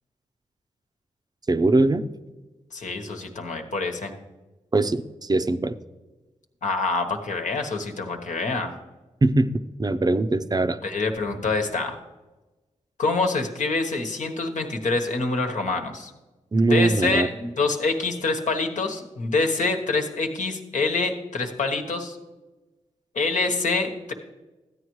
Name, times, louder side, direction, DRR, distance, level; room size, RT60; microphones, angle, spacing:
voice 1, 1.5-2.1 4.7-5.7 9.2-9.5 9.8-10.8 16.5-17.3, right 2 dB, 30° right, 10 dB, 0.6 m, -21 dB
voice 2, 2.7-4.1 6.6-8.7 10.8-12.0 13.0-16.1 16.5-22.2 23.1-24.1, left 3 dB, 70° left, 4 dB, 1.2 m, -26 dB
13.5 x 9.4 x 3.1 m, 1.1 s
supercardioid pair, 40°, 13 cm